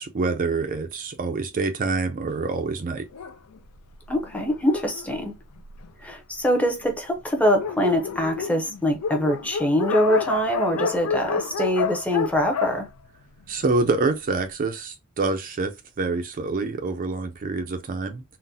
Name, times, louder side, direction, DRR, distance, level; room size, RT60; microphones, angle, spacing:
voice 1, 0.0-3.1 13.5-18.2, right 3 dB, 35° right, 0.4 m, -26 dB
Dog, 3.1-6.1 6.8-6.9 7.2-7.3 7.5-13.9, left 6 dB, 85° left, 0.5 m, -30 dB
voice 2, 4.1-5.3 6.0-12.9, equal, 5° left, 0.6 m, -23 dB
3.8 x 2.1 x 2.7 m
head